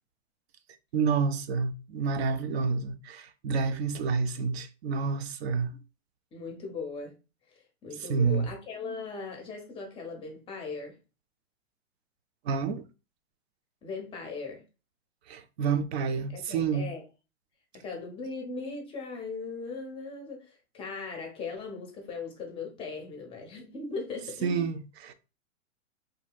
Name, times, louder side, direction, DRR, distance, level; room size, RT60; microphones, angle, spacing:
voice 1, 0.9-5.7 8.1-8.5 12.4-12.8 15.3-16.9 24.4-25.1, right 5 dB, 55° right, 0.5 m, -29 dB
voice 2, 6.3-7.1 7.5-11.0 13.8-14.6 16.3-17.0 17.7-24.7, left 4 dB, 15° left, 0.6 m, -39 dB
2.8 x 2.7 x 2.2 m
hypercardioid pair, 130°, 40 cm